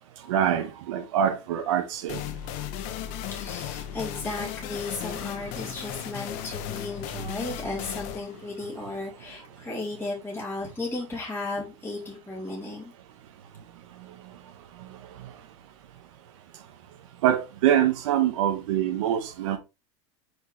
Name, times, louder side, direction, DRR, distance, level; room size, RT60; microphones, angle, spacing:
voice 1, 0.3-2.2 17.2-19.6, right 10 dB, 80° right, 1.0 m, -24 dB
sound 1, 2.1-9.5, left 11 dB, 55° left, 0.9 m, -36 dB
voice 2, 3.3-12.9, left 2 dB, 15° left, 3.6 m, -35 dB
6.2 x 5.1 x 3.3 m
supercardioid pair, 115°, 16 cm